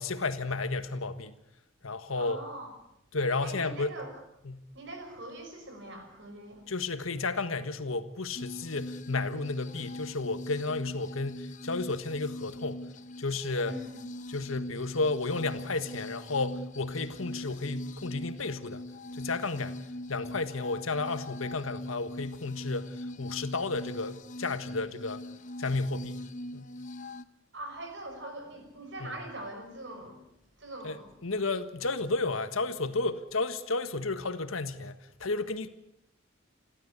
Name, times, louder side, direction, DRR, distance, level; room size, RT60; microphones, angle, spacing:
voice 1, 0.0-1.4 1.8-2.4 3.1-3.9 4.4-4.6 6.7-12.8 13.2-13.8 14.3-18.8 19.1-19.8 20.1-25.2 25.6-26.2 26.5-26.7 29.0-29.1 30.8-35.7, left 3 dB, 85° left, 1.5 m, -32 dB
voice 2, 2.2-2.7 3.4-4.1 4.7-6.7 13.6-13.9 27.5-30.2 30.6-31.1, right 1 dB, 60° right, 5.7 m, -42 dB
sound 1, 8.4-27.2, left 1 dB, 40° left, 0.9 m, -42 dB
29.0 x 13.0 x 8.3 m
head